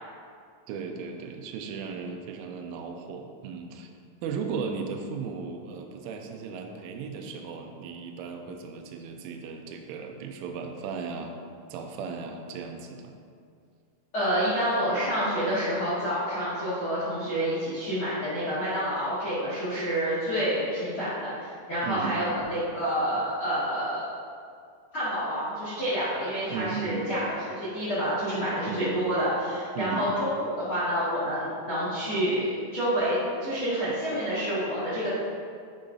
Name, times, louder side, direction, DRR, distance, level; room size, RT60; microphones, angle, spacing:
voice 1, 0.7-3.9 4.2-11.4 11.7-13.1 21.8-22.2 26.5-27.1 28.7-29.0 29.8-30.1, right 5 dB, 80° right, 3 dB, 3.0 m, -36 dB
voice 2, 14.1-24.1 24.9-35.1, equal, 85° left, -12 dB, 1.1 m, -28 dB
9.5 x 6.7 x 2.7 m, 2.2 s
omnidirectional pair, 5.9 m